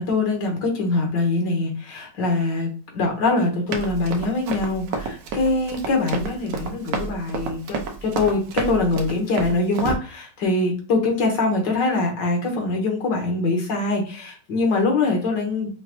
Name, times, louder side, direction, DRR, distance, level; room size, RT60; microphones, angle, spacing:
voice 1, 0.0-15.7, left 3 dB, 80° left, 1 dB, 1.8 m, -23 dB
Run, 3.7-10.0, right 4 dB, 85° right, 1.4 m, -29 dB
5.6 x 2.1 x 2.9 m, 0.39 s
omnidirectional pair, 1.9 m